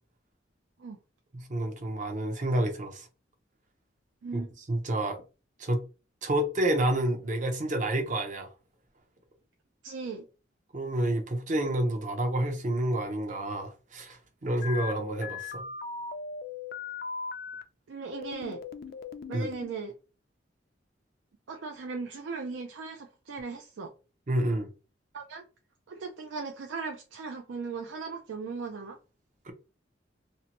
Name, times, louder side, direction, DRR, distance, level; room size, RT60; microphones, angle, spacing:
voice 1, 1.3-3.1 4.3-5.2 5.6-5.8 6.2-8.5 10.7-15.6 19.3-19.5 24.3-24.7, right 1 dB, 45° right, 0.6 m, -29 dB
voice 2, 9.8-10.3 17.9-18.6 19.3-19.9 21.5-23.9 25.1-25.4 25.9-29.0, right 4 dB, 85° right, 0.4 m, -38 dB
sound 1, 14.6-17.6 18.1-19.7, left 5 dB, 55° left, 0.3 m, -38 dB
2.7 x 2.1 x 2.8 m
head